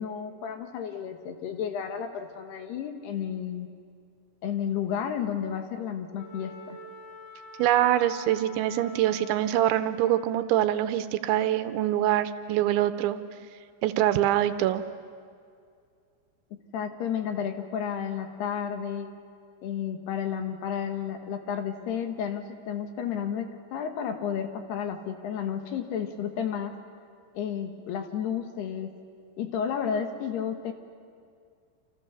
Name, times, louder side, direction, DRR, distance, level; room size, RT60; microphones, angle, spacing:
voice 1, 0.0-3.7 4.4-6.8 16.5-19.1 19.6-26.7 27.3-28.9 29.4-30.7, left 8 dB, 65° left, 6 dB, 3.3 m, -32 dB
Wind instrument woodwind instrument, 6.2-10.5, left 1 dB, 85° left, 6.6 m, -45 dB
voice 2, 7.6-13.2 13.8-14.8, right 12 dB, 80° right, 11 dB, 3.1 m, -24 dB
29.0 x 28.0 x 7.0 m, 2.2 s
omnidirectional pair, 5.4 m